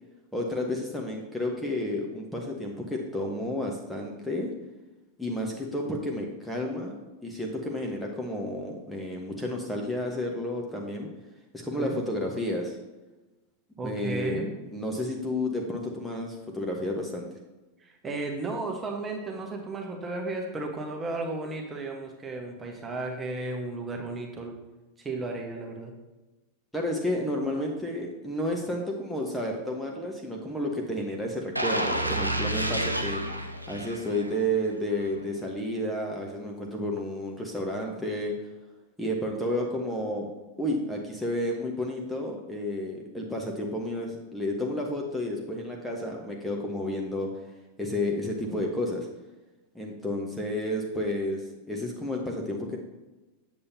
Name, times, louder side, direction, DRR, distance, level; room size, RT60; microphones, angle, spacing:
voice 1, 0.3-4.5 5.2-6.9 7.2-11.1 11.5-12.8 13.8-14.4 14.7-17.3 26.7-33.2 33.7-38.3 39.0-40.3 40.6-47.3 47.8-49.1 49.7-52.8, left 1 dB, 5° left, 0 dB, 1.2 m, -31 dB
voice 2, 13.8-14.5 17.8-24.5 25.0-25.9, right 2 dB, 20° right, 1 dB, 1.2 m, -34 dB
sound 1, 31.5-34.5 34.9-35.1, right 1 dB, 90° right, 0.6 m, -30 dB
8.4 x 7.2 x 2.7 m, 1.1 s
figure-of-eight pair, 90°, 0 cm